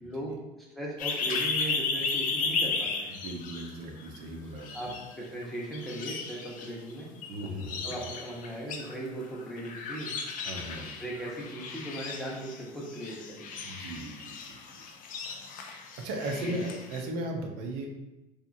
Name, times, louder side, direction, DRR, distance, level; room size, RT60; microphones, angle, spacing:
voice 1, 0.0-3.2 4.7-7.1 7.8-10.1 11.0-13.6 16.4-16.6, right 1 dB, ahead, -4 dB, 0.6 m, -38 dB
sound 1, 1.0-4.2 4.6-5.5 5.7-17.0, left 4 dB, 50° left, 0.4 m, -35 dB
voice 2, 3.1-4.9 7.3-7.9 10.4-10.9 13.6-14.8 16.0-17.9, right 1 dB, 85° right, 1 dB, 0.5 m, -37 dB
2.8 x 2.4 x 2.5 m, 1.0 s
cardioid pair, 115°, 18 cm